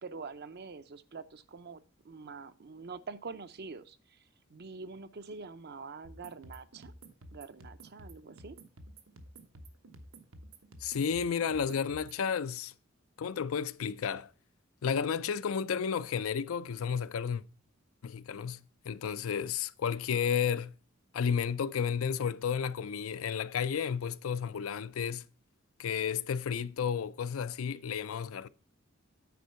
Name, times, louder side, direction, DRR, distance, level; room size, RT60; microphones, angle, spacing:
voice 1, 0.0-6.9 7.3-8.6, right 4 dB, 50° right, 0.6 m, -45 dB
sound 1, 6.0-12.2, right 1 dB, 80° right, 1.1 m, -52 dB
voice 2, 10.8-12.7 13.2-14.3 14.8-17.4 18.0-18.6 18.8-20.7 21.1-25.2 25.8-28.5, left 7 dB, 80° left, 0.4 m, -32 dB
9.4 x 4.4 x 5.6 m
head